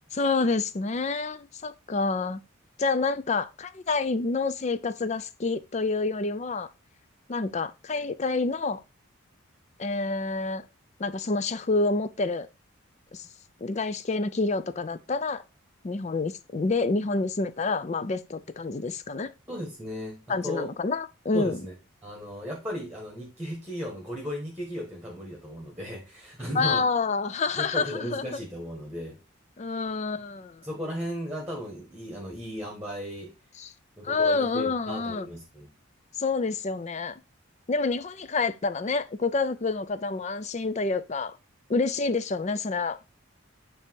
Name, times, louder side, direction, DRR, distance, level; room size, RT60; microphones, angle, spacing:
voice 1, 0.1-2.4 2.8-6.7 7.3-8.8 9.8-10.7 11.0-12.5 13.1-13.3 13.6-15.4 15.8-19.3 20.3-21.6 26.5-28.4 29.6-30.6 33.6-33.7 34.0-35.3 36.2-37.1 37.7-41.3 41.7-43.0, left 3 dB, 35° left, 0.4 m, -28 dB
voice 2, 19.5-20.7 21.3-21.7 22.0-26.8 27.5-29.2 30.6-33.3 34.0-35.7, equal, 5° right, 1.6 m, -36 dB
8.6 x 3.4 x 4.6 m
head